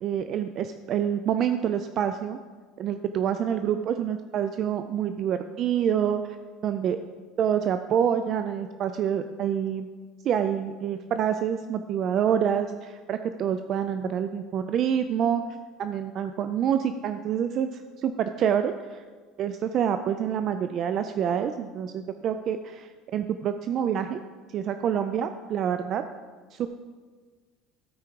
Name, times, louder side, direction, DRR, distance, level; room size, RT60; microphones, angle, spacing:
voice 1, 0.0-2.4 2.8-6.4 6.6-7.0 7.4-9.9 10.2-15.4 15.8-19.0 19.4-24.2 24.5-26.0 26.5-26.7, right 8 dB, 45° right, 9 dB, 0.4 m, -27 dB
13.0 x 4.9 x 4.6 m, 1.5 s
cardioid pair, 130°, 0 cm